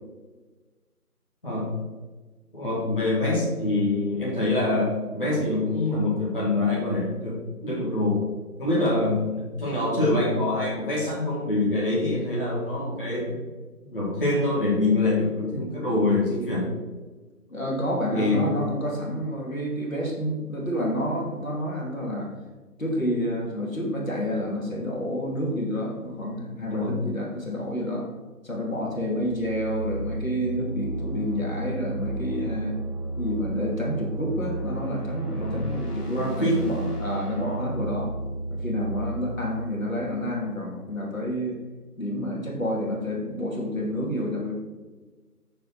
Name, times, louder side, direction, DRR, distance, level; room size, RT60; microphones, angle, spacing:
voice 1, 2.5-8.2 8.6-13.4 13.9-16.7 18.1-18.6 26.7-26.9 35.3-35.6 36.1-36.7, left 2 dB, 35° left, -7 dB, 2.3 m, -25 dB
voice 2, 17.5-22.3 22.8-28.1 28.4-32.7 33.2-38.1 38.5-41.6 42.0-44.6, equal, 60° left, -2 dB, 2.9 m, -29 dB
sound 1, 29.0-40.8, right 2 dB, 85° left, 2.0 m, -33 dB
13.5 x 4.9 x 4.3 m, 1.3 s
figure-of-eight pair, 170°, 46 cm